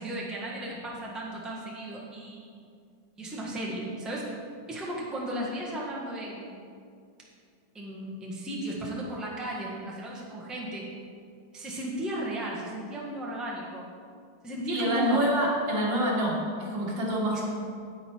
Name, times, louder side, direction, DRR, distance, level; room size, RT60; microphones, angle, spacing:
voice 1, 0.0-2.5 3.2-4.3 4.7-6.5 7.7-10.9 11.5-13.9 14.4-15.2 17.3-17.4, right 1 dB, ahead, -4 dB, 1.3 m, -34 dB
voice 2, 14.7-17.5, equal, 65° right, -3 dB, 2.5 m, -27 dB
9.3 x 9.2 x 4.6 m, 2.3 s
omnidirectional pair, 2.1 m